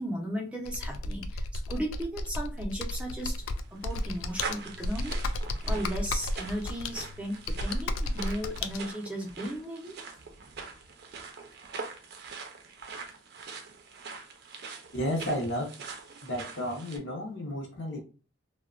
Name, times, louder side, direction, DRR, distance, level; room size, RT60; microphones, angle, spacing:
voice 1, 0.0-3.3 3.7-9.9, equal, 5° right, 0 dB, 0.5 m, -36 dB
Computer keyboard, 0.6-8.8, left 1 dB, 80° left, 0.3 m, -33 dB
sound 1, 3.1-17.0, right 4 dB, 50° right, 0.5 m, -43 dB
voice 2, 14.9-15.7 16.2-18.0, equal, 60° left, 0 dB, 0.7 m, -32 dB
2.7 x 2.1 x 2.4 m, 0.37 s
head